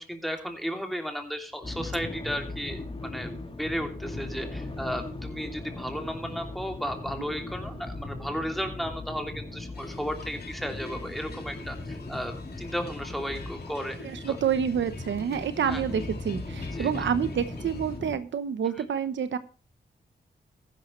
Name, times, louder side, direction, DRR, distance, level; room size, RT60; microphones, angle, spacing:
voice 1, 0.0-14.4 15.6-15.8 16.7-16.9, equal, ahead, 4 dB, 2.9 m, -34 dB
sound 1, 1.6-18.2, left 2 dB, 30° left, 3.3 m, -38 dB
sound 2, 9.7-18.0, left 4 dB, 60° left, 2.5 m, -49 dB
voice 2, 14.0-19.4, right 8 dB, 85° right, 12 dB, 1.0 m, -28 dB
14.5 x 11.5 x 3.2 m, 0.36 s
cardioid pair, 75°, 18 cm